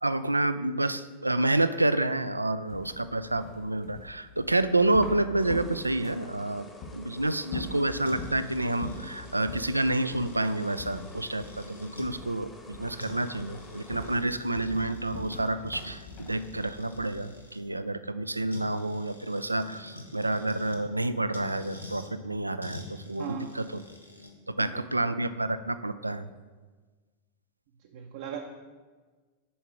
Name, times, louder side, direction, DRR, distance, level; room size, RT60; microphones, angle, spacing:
voice 1, 0.0-23.8 24.6-26.3, right 2 dB, 85° right, 13 dB, 0.3 m, -29 dB
sound 1, 2.7-6.3 6.8-7.0 7.4-8.4 8.8-9.1 9.5-9.7 10.1-10.3 10.8-11.7 12.0-12.4 12.7-13.0 13.4-17.3, left 3 dB, 45° left, 1.7 m, -42 dB
sound 2, 5.4-14.2, left 2 dB, 15° left, 1.0 m, -50 dB
sound 3, 8.0-12.1 12.6-12.7 13.0-17.6 18.5-20.8 21.3-22.1 22.6-24.3, left 1 dB, 85° left, 1.0 m, -47 dB
voice 2, 23.2-23.5 24.6-25.1 27.8-28.4, right 8 dB, 55° right, 1 dB, 0.6 m, -39 dB
7.0 x 4.6 x 6.1 m, 1.4 s
figure-of-eight pair, 90°, 0 cm